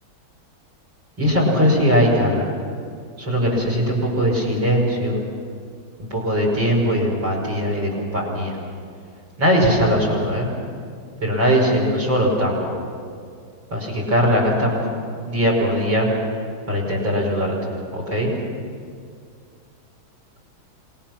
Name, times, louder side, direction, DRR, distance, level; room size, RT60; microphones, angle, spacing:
voice 1, 1.2-2.5 3.2-5.2 6.0-8.6 9.4-10.5 11.2-12.7 13.7-14.9 15.3-16.1 16.7-17.5 17.9-18.3, equal, 65° right, 0 dB, 6.1 m, -20 dB
27.5 x 21.0 x 6.0 m, 2.2 s
omnidirectional pair, 2.2 m